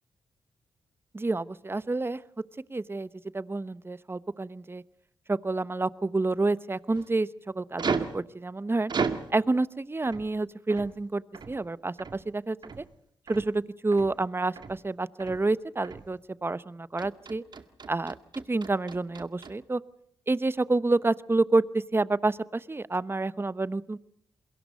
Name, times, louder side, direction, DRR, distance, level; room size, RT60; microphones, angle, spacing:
voice 1, 1.1-2.2 2.7-3.1 3.3-4.8 5.3-7.3 7.5-8.9 9.3-12.8 13.3-17.4 17.9-18.2 18.5-19.8 20.3-24.0, right 2 dB, 25° right, 17 dB, 0.9 m, -28 dB
sound 1, 6.9-7.1 7.8-8.2 8.9-9.3 10.0-10.3 10.7-11.0 11.3-11.6 12.0-12.3 12.6-12.9 13.3-13.5 13.9-14.2 14.5-14.8 15.2-15.5 15.8-16.1 17.0-19.6, right 5 dB, 55° right, 1.9 m, -34 dB
28.5 x 22.0 x 5.3 m, 0.66 s
supercardioid pair, 45°, 9 cm